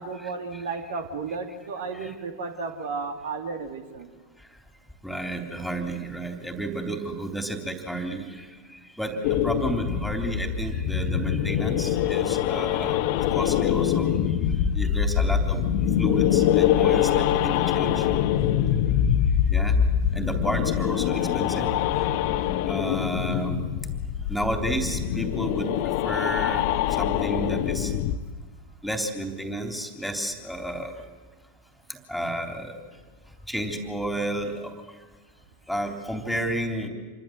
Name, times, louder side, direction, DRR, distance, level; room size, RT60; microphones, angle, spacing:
voice 1, 0.0-4.1, right 4 dB, 55° right, 7 dB, 2.4 m, -33 dB
voice 2, 5.0-13.0 13.3-15.7 16.0-18.2 19.5-19.8 20.1-21.7 22.0-22.1 22.6-23.6 24.3-25.7 26.0-27.9 28.8-30.9 31.9-32.8 33.5-35.0 35.7-36.9, right 1 dB, ahead, 5 dB, 3.5 m, -31 dB
sound 1, 9.2-28.2, left 10 dB, 45° left, 1.3 m, -24 dB
28.0 x 24.0 x 7.9 m, 1.4 s
figure-of-eight pair, 90°, 0 cm